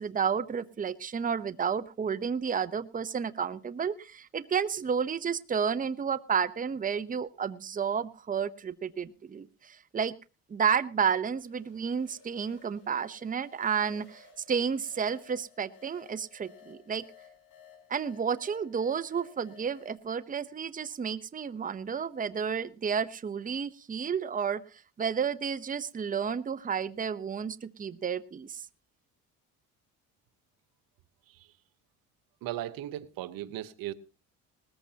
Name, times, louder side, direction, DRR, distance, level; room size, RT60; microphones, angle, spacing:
voice 1, 0.0-10.1 10.5-17.0 17.9-24.6 25.0-28.7, right 7 dB, 25° right, 0.7 m, -31 dB
sound 1, 10.9-20.0, left 6 dB, 60° left, 7.9 m, -57 dB
voice 2, 32.4-33.9, right 13 dB, 80° right, 0.9 m, -37 dB
19.5 x 14.5 x 2.8 m
cardioid pair, 90°, 35 cm